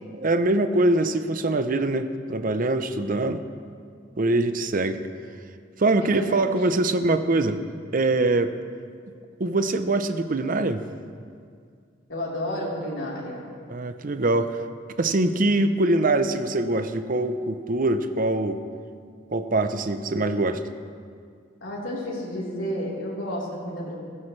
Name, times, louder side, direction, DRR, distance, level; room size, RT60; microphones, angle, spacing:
voice 1, 0.1-3.4 4.2-5.0 5.8-7.6 7.9-8.5 9.4-10.8 13.7-14.6 15.0-18.6 19.3-20.6, right 2 dB, 45° right, 10 dB, 0.7 m, -23 dB
voice 2, 6.0-6.4 12.1-13.5 21.6-23.9, equal, 85° left, -6 dB, 3.8 m, -31 dB
16.0 x 16.0 x 3.3 m, 2.1 s
head